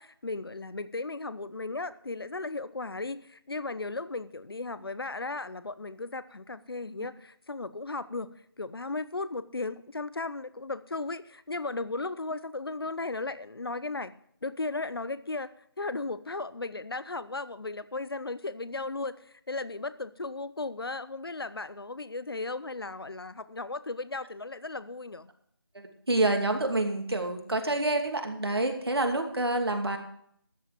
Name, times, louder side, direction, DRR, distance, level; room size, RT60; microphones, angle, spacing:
voice 1, 0.0-8.3 8.6-14.1 14.4-15.5 15.8-19.2 19.5-25.3, left 3 dB, 70° left, 15 dB, 0.8 m, -36 dB
voice 2, 25.7-30.0, right 2 dB, 80° right, 4 dB, 2.6 m, -28 dB
13.0 x 9.1 x 5.1 m, 0.67 s
figure-of-eight pair, 170°, 13 cm